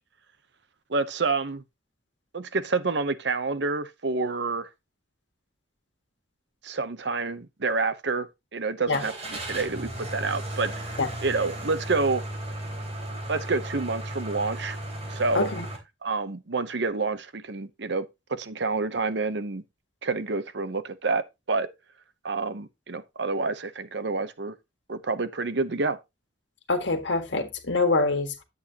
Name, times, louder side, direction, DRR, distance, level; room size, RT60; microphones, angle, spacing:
voice 1, 0.9-1.6 2.3-4.7 6.6-8.3 8.5-10.9 11.2-12.3 13.3-14.8 15.1-15.5 16.0-19.6 20.0-21.7 22.2-24.5 24.9-26.0, right 3 dB, 65° right, 0.8 m, -28 dB
Car / Engine starting, 8.9-15.8, right 1 dB, 35° right, 3.4 m, -35 dB
voice 2, 15.3-15.7 26.7-28.4, left 3 dB, 70° left, 1.7 m, -25 dB
9.9 x 8.2 x 2.9 m
head